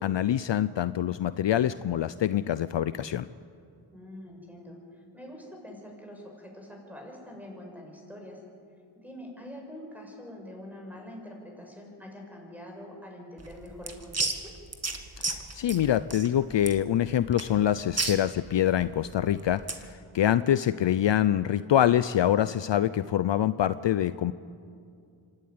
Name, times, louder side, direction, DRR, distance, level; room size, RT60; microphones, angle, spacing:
voice 1, 0.0-3.3 15.2-24.3, left 11 dB, 60° left, 14 dB, 0.6 m, -25 dB
voice 2, 3.9-8.4 8.9-14.5, left 1 dB, 5° right, 0 dB, 6.3 m, -45 dB
sound 1, 13.4-19.9, right 3 dB, 30° right, 1.9 m, -34 dB
25.5 x 12.5 x 9.5 m, 2.4 s
cardioid pair, 70°, 50 cm